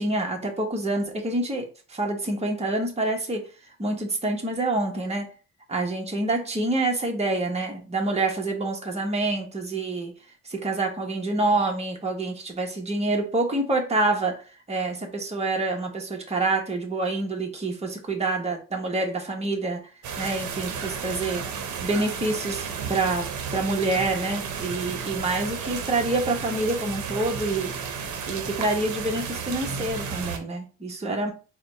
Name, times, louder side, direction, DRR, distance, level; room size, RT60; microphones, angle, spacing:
voice 1, 0.0-3.5 3.8-5.3 5.7-10.1 10.5-19.9 20.2-21.5 21.8-27.8 28.3-31.3, right 2 dB, 20° right, 0 dB, 1.2 m, -27 dB
sound 1, 20.0-30.4, right 6 dB, 75° right, 0.8 m, -33 dB
4.2 x 2.3 x 3.9 m, 0.34 s
cardioid pair, 90°, 30 cm